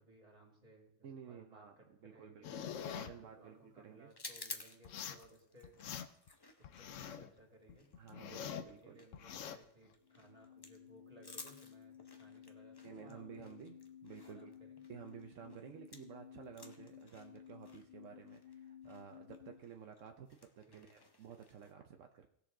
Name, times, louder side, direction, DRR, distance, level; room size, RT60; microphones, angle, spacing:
voice 1, 0.0-2.5 3.0-5.8 6.6-7.9 8.2-13.7 14.2-14.8 20.7-21.0, right 1 dB, 30° right, 1 dB, 2.5 m, -62 dB
voice 2, 1.0-4.1 8.0-9.0 12.8-14.5 14.9-22.3, right 7 dB, 75° right, 4 dB, 1.1 m, -53 dB
sound 1, 2.4-3.1 4.8-5.3 5.6-6.3 6.6-7.3 7.7-8.7 9.1-9.6, left 8 dB, 80° left, 1.0 m, -45 dB
sound 2, 4.1-16.2 16.4-21.7, left 3 dB, 25° left, 0.7 m, -55 dB
sound 3, 10.0-19.6, left 9 dB, 55° left, 1.5 m, -56 dB
18.0 x 6.9 x 3.8 m, 0.69 s
omnidirectional pair, 1.3 m